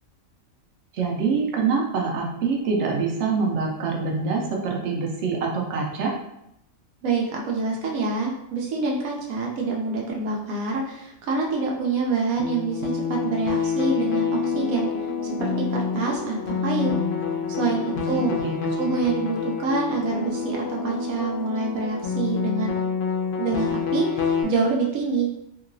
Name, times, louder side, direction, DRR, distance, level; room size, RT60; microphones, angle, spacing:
voice 1, 0.9-6.2 17.8-19.1, right 5 dB, 65° right, 0 dB, 0.8 m, -26 dB
voice 2, 7.0-14.9 15.2-17.0 17.6-18.4 18.8-22.7 23.4-25.3, right 4 dB, 85° right, -2 dB, 1.1 m, -26 dB
sound 1, 12.4-24.4, left 6 dB, 70° left, 0.9 m, -27 dB
2.9 x 2.8 x 2.6 m, 0.81 s
omnidirectional pair, 1.4 m